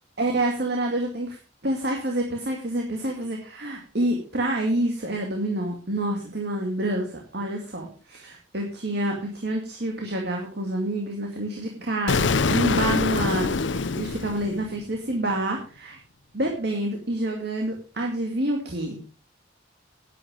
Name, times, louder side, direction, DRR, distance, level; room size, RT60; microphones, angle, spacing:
voice 1, 0.2-1.4 1.6-16.0 16.3-19.0, right 1 dB, 60° right, 1 dB, 2.2 m, -28 dB
Explosion, 12.1-15.0, left 4 dB, 70° left, 0.7 m, -24 dB
11.0 x 9.7 x 5.1 m, 0.38 s
head